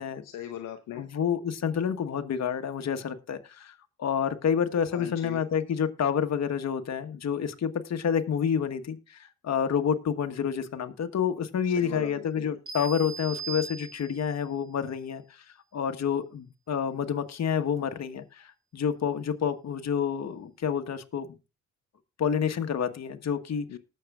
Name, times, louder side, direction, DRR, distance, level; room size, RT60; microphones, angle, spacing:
voice 1, 0.2-1.1 4.9-5.4 11.6-12.5 23.7-23.8, left 11 dB, 70° left, 6 dB, 0.9 m, -39 dB
voice 2, 1.0-3.7 4.0-15.4 15.7-21.3 22.2-23.7, left 7 dB, 50° left, 7 dB, 1.4 m, -29 dB
sound 1, 12.7-14.4, right 5 dB, 60° right, 4.1 m, -39 dB
19.0 x 6.7 x 2.4 m, 0.29 s
supercardioid pair, 55°, 34 cm